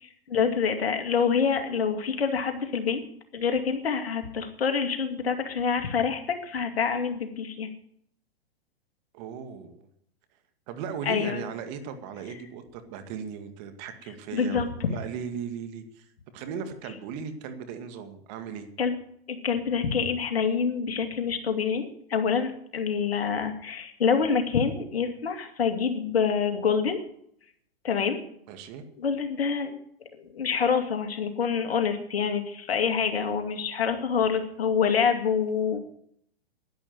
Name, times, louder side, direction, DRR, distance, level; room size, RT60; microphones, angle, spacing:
voice 1, 0.0-3.0 3.3-7.7 11.0-11.4 14.3-14.7 18.8-18.9 19.3-27.0 27.8-28.2 29.0-29.7 30.1-35.8, left 6 dB, 70° left, 6 dB, 2.4 m, -26 dB
voice 2, 9.1-9.9 10.7-16.1 16.3-18.7 28.5-28.8, right 7 dB, 45° right, 8 dB, 2.2 m, -37 dB
11.0 x 11.0 x 7.7 m, 0.69 s
hypercardioid pair, 115°, 31 cm